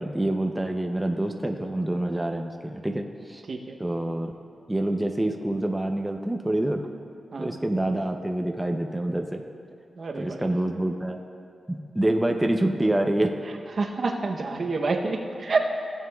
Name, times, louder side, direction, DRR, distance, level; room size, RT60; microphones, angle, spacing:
voice 1, 0.0-3.4 3.8-4.3 4.7-6.8 7.4-9.4 10.2-11.2 11.7-13.3, right 1 dB, 10° right, 3 dB, 0.5 m, -26 dB
voice 2, 3.5-3.8 7.3-7.6 10.0-10.5 13.8-15.6, right 3 dB, 60° right, 3 dB, 0.7 m, -28 dB
16.0 x 7.3 x 2.3 m, 2.4 s
cardioid pair, 75°, 0 cm